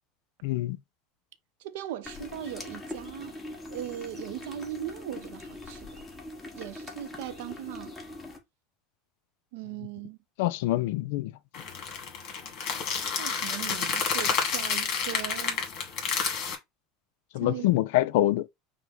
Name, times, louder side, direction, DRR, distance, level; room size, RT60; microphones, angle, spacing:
voice 1, 0.4-0.8 10.4-11.3 17.3-18.5, left 15 dB, 75° left, 0.3 m, -25 dB
voice 2, 1.6-3.4 3.7-6.0 6.5-7.9 9.5-10.2 13.1-15.6 17.4-17.7, right 13 dB, 80° right, 0.5 m, -39 dB
sound 1, 2.0-8.4, left 2 dB, 10° left, 1.2 m, -42 dB
sound 2, 11.5-16.5, left 6 dB, 50° left, 1.8 m, -30 dB
5.6 x 2.1 x 3.7 m
supercardioid pair, 135°, 0 cm